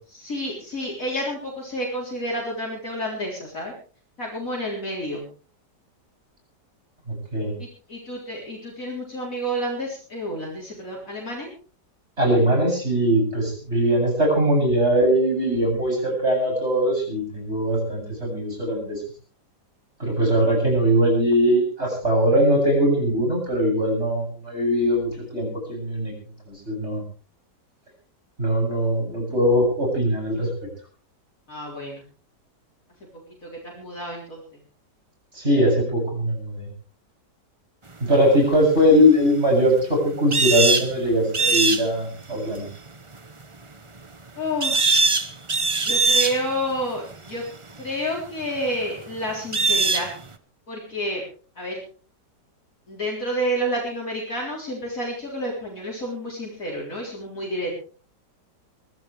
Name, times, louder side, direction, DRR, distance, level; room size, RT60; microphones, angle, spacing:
voice 1, 0.2-3.7 4.2-5.2 7.9-11.5 31.5-32.0 33.6-34.4 44.4-44.8 45.8-47.4 47.8-50.1 50.7-51.2 51.6-51.8 52.9-57.7, equal, 50° left, -3 dB, 4.3 m, -29 dB
voice 2, 7.1-7.5 12.2-19.0 20.0-26.1 26.5-27.0 28.4-30.5 35.3-36.7 38.0-42.7, equal, 35° right, 1 dB, 8.5 m, -21 dB
sound 1, 39.3-39.4 40.3-40.9 41.3-41.9 43.1-43.2 44.6-46.4 46.8-46.9 47.3-47.4 49.5-50.1, right 3 dB, 20° right, 0.9 m, -20 dB
23.0 x 16.0 x 3.4 m, 0.39 s
omnidirectional pair, 1.9 m